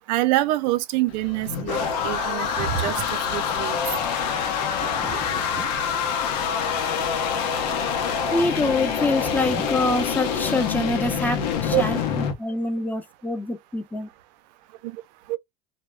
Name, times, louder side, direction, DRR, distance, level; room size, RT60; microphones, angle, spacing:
voice 1, 0.1-3.8 11.7-11.8 15.3-15.4, right 17 dB, 85° right, 0.5 m, -25 dB
sound 1, 1.1-12.3, left 7 dB, 85° left, 0.7 m, -26 dB
sound 2, 2.3-3.5 4.7-6.3 8.1-10.0, right 7 dB, 45° right, 0.8 m, -36 dB
voice 2, 8.3-12.0 12.4-14.1, left 2 dB, 10° left, 0.7 m, -25 dB
2.3 x 2.0 x 3.3 m
supercardioid pair, 100°, 21 cm